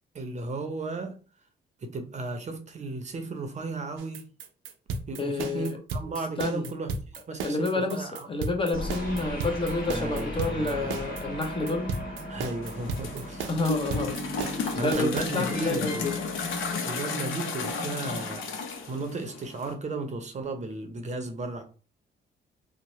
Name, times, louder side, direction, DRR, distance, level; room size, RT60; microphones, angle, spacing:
voice 1, 0.1-1.2 1.8-4.3 5.1-6.9 7.3-8.3 9.9-11.1 12.3-13.5 14.8-16.1 16.8-18.5 18.8-21.6, right 3 dB, 35° right, 0.6 m, -34 dB
sound 1, 4.0-15.2, right 4 dB, 80° right, 0.5 m, -34 dB
voice 2, 5.2-5.8 6.4-6.7 7.4-11.9 13.5-14.2 14.8-16.1, left 2 dB, 25° left, 0.6 m, -29 dB
sound 2, 8.7-17.3, left 1 dB, 50° left, 1.3 m, -37 dB
sound 3, 12.6-19.7, left 4 dB, 80° left, 0.6 m, -33 dB
2.7 x 2.0 x 3.0 m
cardioid pair, 90°, 20 cm